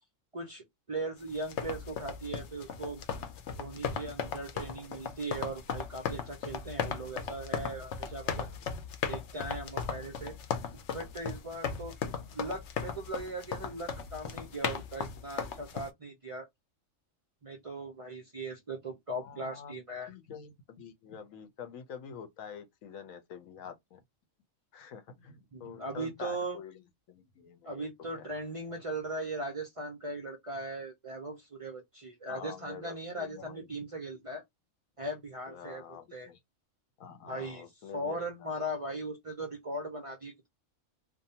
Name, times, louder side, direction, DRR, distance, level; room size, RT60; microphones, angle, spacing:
voice 1, 0.3-3.0 3.6-8.5 9.1-10.4 10.9-12.0 12.3-16.5 17.4-20.1 25.5-26.6 27.6-34.4 35.0-36.3 37.3-37.7 37.9-40.5, right 1 dB, 50° right, 0.4 m, -39 dB
sound 1, 1.3-15.9, left 6 dB, 65° left, 0.8 m, -37 dB
voice 2, 19.2-19.7 20.1-24.0 24.7-26.8 27.1-27.9 28.2-28.3 32.3-33.9 35.5-36.4 37.0-38.5, left 7 dB, 90° left, 1.1 m, -47 dB
2.6 x 2.2 x 2.7 m
omnidirectional pair, 1.4 m